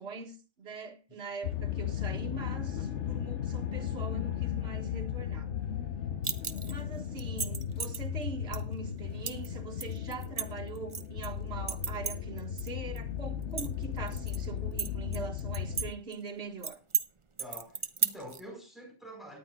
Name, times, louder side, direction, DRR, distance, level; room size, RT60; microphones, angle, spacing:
voice 1, 0.0-5.5 6.7-16.8, right 3 dB, 55° right, 1.9 m, -42 dB
sound 1, 1.4-15.9, left 9 dB, 70° left, 1.1 m, -36 dB
sound 2, 2.4-7.5, equal, 45° left, 6.4 m, -59 dB
sound 3, 6.2-6.8 7.2-8.0 8.5-8.6 9.3-9.5 9.8-11.3 11.7-12.7 13.0-13.1 13.4-14.4 14.8-15.9 16.1-16.2 16.6-17.1 17.4-18.4, right 5 dB, 30° right, 0.6 m, -33 dB
voice 2, 17.4-19.4, equal, ahead, 4.6 m, -47 dB
18.5 x 10.5 x 2.3 m
omnidirectional pair, 1.3 m